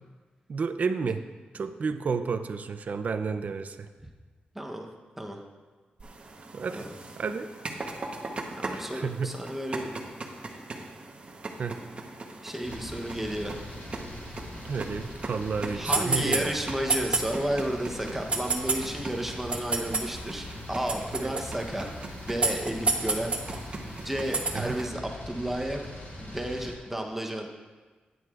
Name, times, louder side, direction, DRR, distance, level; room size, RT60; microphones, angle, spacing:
voice 1, 0.5-1.2 1.5-3.9 6.5-6.9 7.2-7.5 8.7-9.4 11.6-11.8 14.7-16.6 21.2-21.4 24.5-24.7, right 5 dB, 55° right, 9 dB, 0.5 m, -31 dB
voice 2, 4.5-4.9 5.2-5.4 6.7-6.9 8.5-9.9 12.4-13.7 15.7-21.9 22.2-23.4 24.0-25.0 25.3-25.8 26.2-27.5, right 1 dB, 10° right, 1 dB, 0.8 m, -32 dB
sound 1, 6.0-24.9, right 3 dB, 35° right, 0.9 m, -34 dB
sound 2, 12.6-26.7, left 1 dB, 75° left, 3.2 m, -42 dB
13.0 x 9.5 x 2.4 m, 1.3 s
wide cardioid pair, 140°, 3 cm